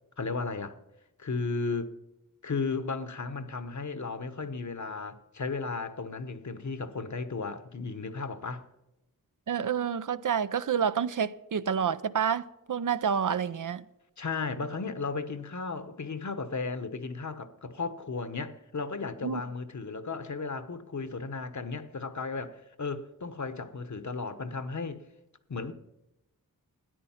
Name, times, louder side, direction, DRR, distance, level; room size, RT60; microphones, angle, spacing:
voice 1, 0.2-0.8 1.2-1.9 2.4-8.6 14.2-25.0 25.5-25.7, left 4 dB, 55° left, 1.1 m, -35 dB
voice 2, 9.5-13.8 19.2-19.4, right 7 dB, 60° right, 0.6 m, -29 dB
14.0 x 9.7 x 5.7 m
wide cardioid pair, 75°, 35 cm